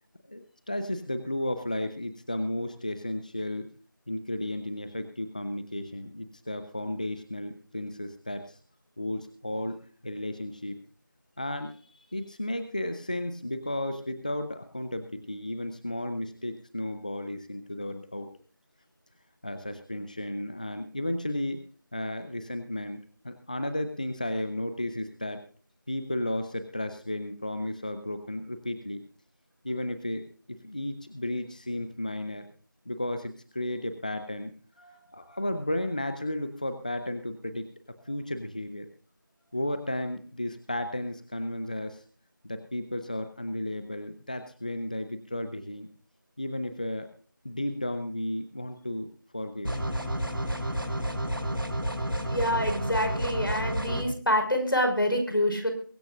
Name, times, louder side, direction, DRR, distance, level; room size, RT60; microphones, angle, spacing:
voice 1, 0.3-3.7 4.1-8.6 9.0-10.8 11.4-18.3 19.4-21.6 21.9-25.4 25.9-29.0 29.6-32.5 32.9-34.5 35.1-37.7 38.0-38.9 39.5-42.0 42.4-45.9 46.4-47.1 47.4-49.1 49.3-49.8, left 1 dB, 20° left, 9 dB, 0.8 m, -33 dB
sound 1, 49.6-54.0, equal, 90° right, 6.0 m, -30 dB
voice 2, 52.3-55.7, equal, 80° left, 5 dB, 5.5 m, -27 dB
23.0 x 11.5 x 2.5 m, 0.42 s
figure-of-eight pair, 175°, 11 cm